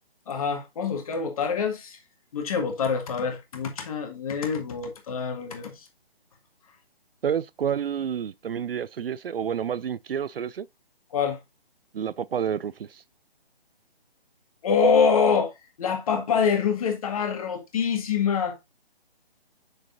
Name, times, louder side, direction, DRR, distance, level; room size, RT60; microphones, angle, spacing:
voice 1, 0.3-2.0 2.3-5.7 11.1-11.4 14.6-15.5 15.8-18.6, left 6 dB, 35° left, 1.8 m, -25 dB
voice 2, 7.2-10.7 11.9-13.0, right 8 dB, 65° right, 0.4 m, -29 dB
6.8 x 6.5 x 2.6 m
figure-of-eight pair, 145°, 31 cm